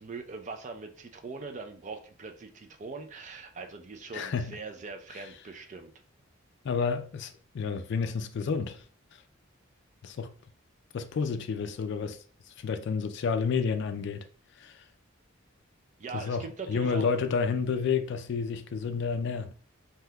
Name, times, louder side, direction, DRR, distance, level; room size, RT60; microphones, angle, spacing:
voice 1, 0.0-5.9 16.0-17.1, right 4 dB, 35° right, 0.4 m, -41 dB
voice 2, 4.1-4.6 6.6-8.8 10.0-10.3 10.9-12.2 12.5-14.3 14.6-14.8 16.1-19.5, left 5 dB, 55° left, 0.3 m, -30 dB
3.4 x 2.7 x 2.2 m
head